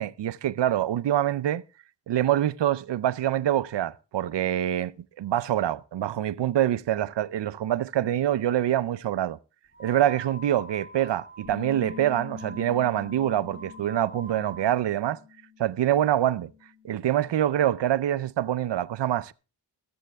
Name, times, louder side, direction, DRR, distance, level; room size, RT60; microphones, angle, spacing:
voice 1, 0.0-1.6 2.1-4.9 5.2-9.4 9.8-15.2 15.6-16.5 16.8-19.3, right 12 dB, 75° right, 0.6 m, -25 dB
sound 1, 9.7-14.7, equal, 25° left, 3.3 m, -45 dB
Bass guitar, 11.4-15.8 16.1-17.7, left 8 dB, 45° left, 6.8 m, -45 dB
19.5 x 7.9 x 3.4 m
wide cardioid pair, 95°, 43 cm